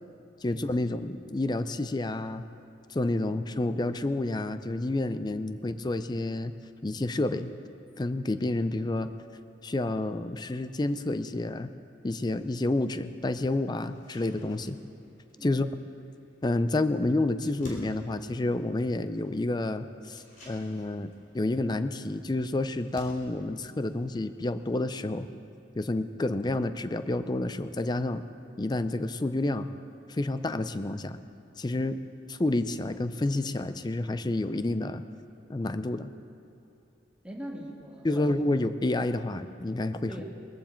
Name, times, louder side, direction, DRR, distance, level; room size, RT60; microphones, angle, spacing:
voice 1, 0.4-2.4 2.9-6.5 6.8-7.5 8.0-9.1 9.6-11.7 12.0-14.8 15.4-15.7 16.4-25.3 25.8-28.2 28.6-29.7 30.1-31.2 31.6-32.0 32.3-35.0 35.5-36.1 38.0-40.1, left 2 dB, 20° left, 11 dB, 0.4 m, -29 dB
voice 2, 3.1-3.7 15.4-15.7 31.8-32.0 37.2-38.4 40.1-40.2, equal, 5° right, -1 dB, 1.6 m, -43 dB
sound 1, 13.8-25.5, equal, 45° left, 3.3 m, -55 dB
21.0 x 14.5 x 4.5 m, 2.8 s
head